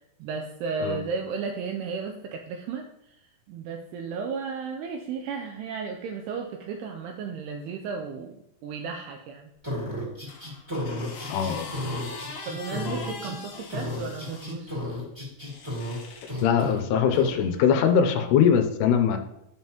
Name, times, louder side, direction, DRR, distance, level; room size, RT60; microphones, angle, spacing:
voice 1, 0.2-3.2 3.5-8.4 8.6-9.5 12.5-14.8, right 5 dB, 80° right, 3 dB, 2.6 m, -34 dB
sound 1, 9.6-13.3 13.7-16.0 16.3-16.8 17.1-17.3, left 1 dB, 10° right, 1.9 m, -33 dB
sound 2, 10.3-14.6 15.4-16.4 17.4-17.5, left 3 dB, 60° left, 2.4 m, -41 dB
voice 2, 11.3-11.7 16.4-19.2, left 7 dB, 85° left, 6 dB, 2.8 m, -21 dB
12.5 x 5.5 x 3.0 m, 0.82 s
omnidirectional pair, 4.7 m